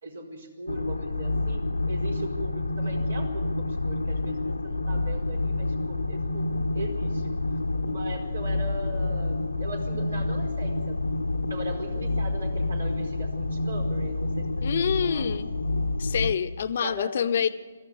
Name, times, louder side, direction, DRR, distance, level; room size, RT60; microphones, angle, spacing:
voice 1, 0.0-6.5 6.7-7.3 7.8-10.9 11.5-14.5 14.7-15.3 16.8-17.2, right 1 dB, 70° right, 3 dB, 4.7 m, -39 dB
sound 1, 0.7-16.4, left 2 dB, 85° left, 1.2 m, -28 dB
voice 2, 14.6-15.5 16.0-17.5, left 8 dB, 50° left, 11 dB, 1.0 m, -26 dB
23.0 x 14.0 x 9.8 m, 1.3 s
figure-of-eight pair, 135°, 0 cm